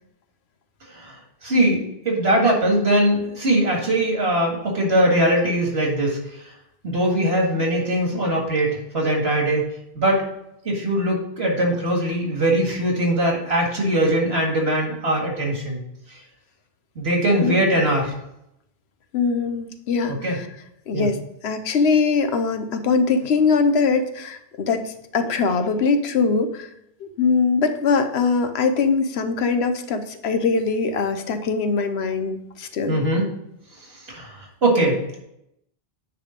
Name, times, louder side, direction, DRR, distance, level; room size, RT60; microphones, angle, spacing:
voice 1, 0.9-6.2 6.8-9.7 9.9-10.2 10.7-15.8 16.1-16.2 17.0-18.1 20.2-20.4 20.9-21.1 32.9-33.2 34.1-35.0, right 1 dB, 80° right, -1 dB, 2.2 m, -21 dB
voice 2, 19.1-20.5 20.9-26.7 27.0-33.0, left 4 dB, 85° left, 8 dB, 1.0 m, -22 dB
9.3 x 3.5 x 5.1 m, 0.80 s
omnidirectional pair, 1.1 m